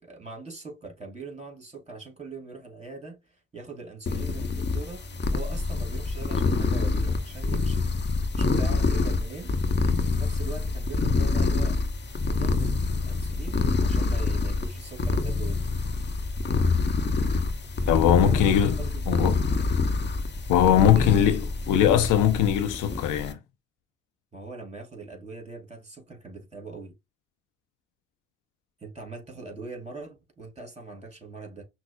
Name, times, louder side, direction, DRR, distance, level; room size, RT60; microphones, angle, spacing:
voice 1, 0.0-7.9 8.3-9.6 10.0-11.8 12.2-15.6 18.1-18.5 18.8-19.5 20.8-21.1 24.3-26.9 28.8-31.6, right 3 dB, 20° right, 2.5 m, -42 dB
sound 1, 4.1-23.3, left 3 dB, 30° left, 0.9 m, -26 dB
voice 2, 17.9-18.8 19.1-19.4 20.5-23.4, left 10 dB, 60° left, 0.6 m, -21 dB
5.9 x 2.0 x 2.4 m
hypercardioid pair, 50°, 35 cm